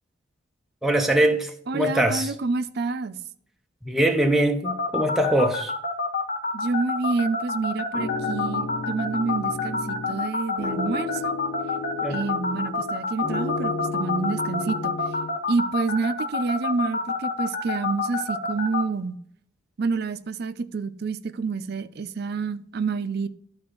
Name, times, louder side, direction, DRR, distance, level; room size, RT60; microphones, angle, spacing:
voice 1, 0.8-2.3 3.8-5.7 12.0-12.2, right 1 dB, ahead, 0.6 m, -22 dB
voice 2, 1.7-3.2 6.5-11.4 12.1-15.0 15.5-19.2 19.8-23.3, right 4 dB, 55° right, 0.4 m, -28 dB
sound 1, 4.6-18.8, left 4 dB, 45° left, 1.0 m, -27 dB
sound 2, 7.9-10.3 10.6-12.9 13.2-15.3, left 3 dB, 30° left, 2.7 m, -33 dB
11.5 x 4.3 x 3.8 m
head